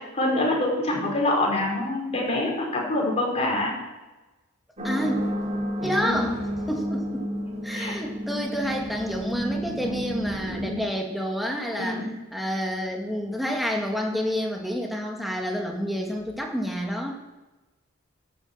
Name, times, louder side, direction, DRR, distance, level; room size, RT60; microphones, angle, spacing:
voice 1, 0.1-3.7 6.0-6.2 7.7-7.9 11.8-12.1, left 2 dB, 35° left, -2 dB, 5.0 m, -25 dB
voice 2, 4.8-5.2 5.8-7.3 7.6-12.0 12.3-17.1, equal, ahead, 0 dB, 2.2 m, -29 dB
sound 1, 4.8-10.7, equal, 35° right, 3.5 m, -31 dB
12.5 x 9.3 x 7.5 m, 1.1 s
head